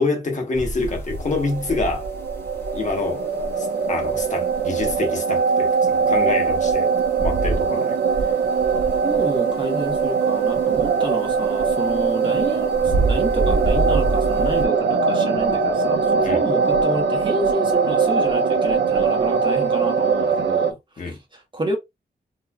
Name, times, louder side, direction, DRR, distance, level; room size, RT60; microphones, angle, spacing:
voice 1, 0.0-2.1 2.7-3.2 3.6-6.9 7.2-8.0 16.2-16.4 21.0-21.2, left 3 dB, 45° left, 1.1 m, -26 dB
sound 1, 0.5-5.6 5.9-7.8 8.1-10.9 11.2-14.7, right 2 dB, 15° left, 1.0 m, -28 dB
sound 2, 1.2-20.7, right 5 dB, 75° right, 0.5 m, -21 dB
voice 2, 8.9-20.8 21.0-21.8, right 2 dB, 25° right, 1.2 m, -29 dB
3.8 x 2.6 x 2.3 m
wide cardioid pair, 170°, 17 cm